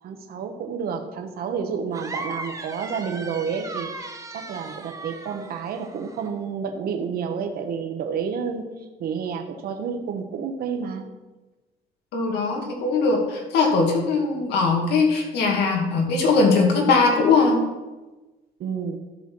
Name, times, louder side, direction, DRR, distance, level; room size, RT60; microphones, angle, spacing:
voice 1, 0.0-4.1 4.3-8.7 9.0-11.1 18.6-19.0, right 6 dB, 65° right, 4 dB, 1.1 m, -30 dB
sound 1, 1.9-6.3, right 2 dB, 20° right, 1.2 m, -37 dB
voice 2, 12.1-17.6, left 4 dB, 80° left, 0 dB, 2.1 m, -20 dB
13.0 x 4.5 x 6.1 m, 1.1 s
cardioid pair, 110°, 17 cm